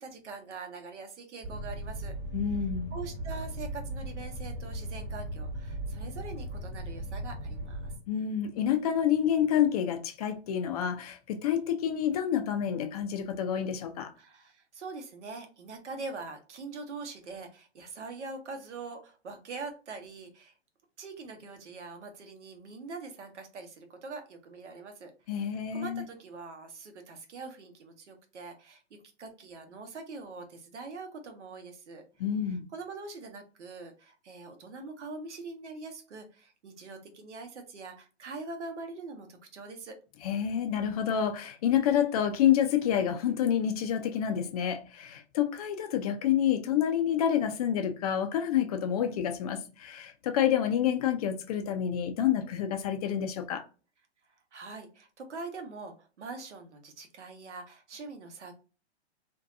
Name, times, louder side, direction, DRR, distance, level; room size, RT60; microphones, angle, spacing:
voice 1, 0.0-2.1 2.9-7.9 14.2-20.5 21.0-32.0 32.4-40.0 54.5-58.5, right 3 dB, 80° right, 0.9 m, -43 dB
sound 1, 1.4-8.0, right 1 dB, 30° right, 1.2 m, -37 dB
voice 2, 2.3-2.9 8.1-14.1 25.3-26.0 32.2-32.6 40.2-53.6, left 9 dB, 35° left, 0.4 m, -28 dB
2.6 x 2.2 x 2.5 m
hypercardioid pair, 130°, 34 cm